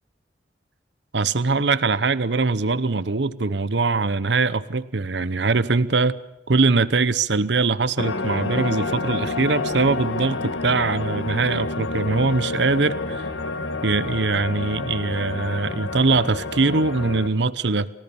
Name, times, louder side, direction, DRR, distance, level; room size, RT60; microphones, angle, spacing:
voice 1, 1.1-6.2 6.5-13.2 13.8-17.9, right 3 dB, 70° right, 16 dB, 0.9 m, -22 dB
sound 1, 8.0-17.3, left 3 dB, 85° left, 1.9 m, -29 dB
29.5 x 18.0 x 7.1 m, 1.0 s
head